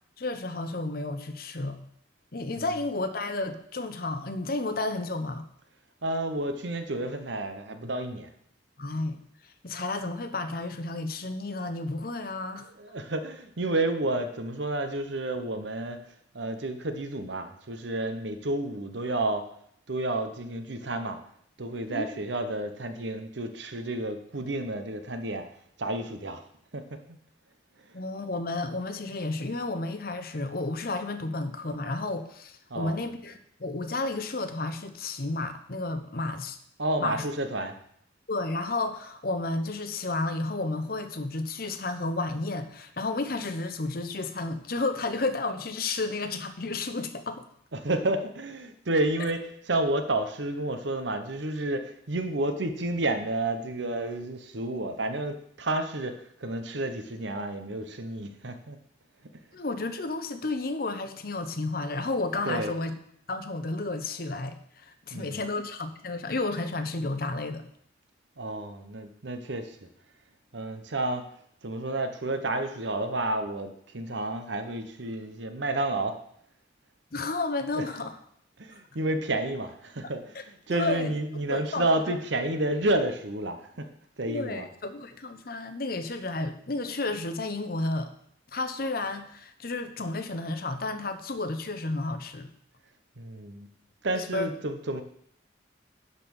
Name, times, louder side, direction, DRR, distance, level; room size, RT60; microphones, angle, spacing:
voice 1, 0.2-1.9 2.3-5.4 8.8-9.2 9.6-12.7 21.9-22.1 27.9-36.6 37.0-37.2 38.3-47.4 59.5-62.9 63.3-67.6 77.1-78.2 80.3-80.4 80.7-81.1 81.5-82.2 84.3-88.1 88.5-92.5 94.2-94.5, left 2 dB, 50° left, 9 dB, 0.8 m, -32 dB
voice 2, 6.0-8.3 12.8-16.0 16.3-19.5 19.9-21.2 21.6-25.4 25.8-26.4 26.7-27.2 32.7-33.0 36.8-37.8 47.7-58.8 62.4-62.7 65.1-65.4 68.4-69.8 70.5-71.2 71.6-76.2 77.8-77.9 78.6-83.9 84.2-84.6 93.2-93.7 94.0-95.0, right 2 dB, 75° right, 8 dB, 1.0 m, -30 dB
11.0 x 4.3 x 7.1 m, 0.68 s
head